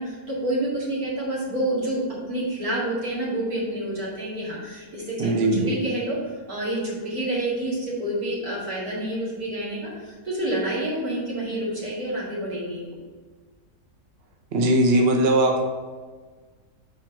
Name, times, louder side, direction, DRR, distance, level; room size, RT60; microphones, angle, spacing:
voice 1, 0.0-6.2 6.5-13.0, right 1 dB, 75° right, -7 dB, 2.6 m, -28 dB
voice 2, 5.2-5.8 14.5-15.6, right 1 dB, 50° right, 1 dB, 0.9 m, -20 dB
4.6 x 4.2 x 5.8 m, 1.4 s
omnidirectional pair, 1.6 m